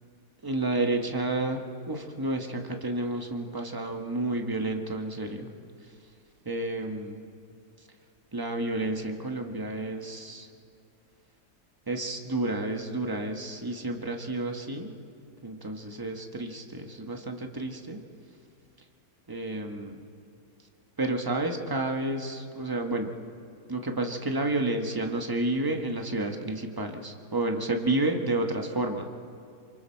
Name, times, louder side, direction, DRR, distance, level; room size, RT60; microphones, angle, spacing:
voice 1, 0.4-5.5 6.4-7.2 8.3-10.5 11.9-15.0 15.4-18.0 19.3-20.0 21.0-23.1 23.7-29.0, right 2 dB, 15° right, 3 dB, 1.0 m, -30 dB
27.0 x 24.5 x 4.5 m, 2.4 s
omnidirectional pair, 1.9 m